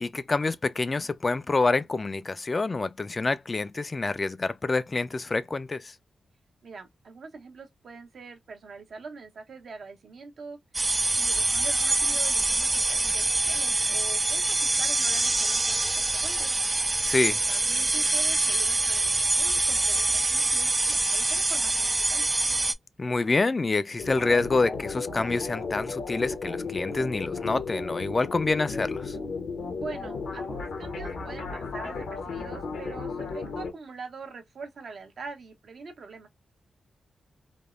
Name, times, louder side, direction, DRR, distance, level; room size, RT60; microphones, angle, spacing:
voice 1, 0.0-5.9 17.0-17.5 23.0-29.2, left 3 dB, 35° left, 0.4 m, -27 dB
voice 2, 6.6-10.6 11.2-16.5 17.5-22.2 29.7-36.3, right 4 dB, 70° right, 0.9 m, -43 dB
sound 1, 10.7-22.7, right 2 dB, 30° right, 0.4 m, -25 dB
sound 2, 24.0-33.7, left 4 dB, 85° left, 1.0 m, -34 dB
3.4 x 2.1 x 2.4 m
cardioid pair, 65°, 0 cm